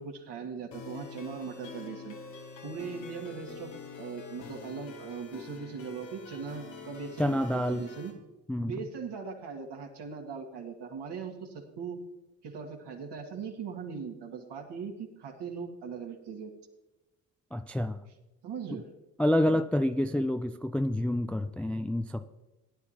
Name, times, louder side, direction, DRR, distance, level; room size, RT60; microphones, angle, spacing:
voice 1, 0.0-2.2 2.6-8.1 8.6-12.0 12.4-16.5 18.4-18.9 19.4-19.6, right 5 dB, 55° right, 2 dB, 2.3 m, -40 dB
sound 1, 0.7-8.1, left 4 dB, 90° left, 1.8 m, -45 dB
voice 2, 7.2-7.8 8.5-8.8 17.5-18.0 18.7-18.8 19.2-22.3, left 1 dB, 5° left, 9 dB, 0.4 m, -28 dB
17.0 x 11.0 x 2.9 m, 1.0 s
hypercardioid pair, 55°, 48 cm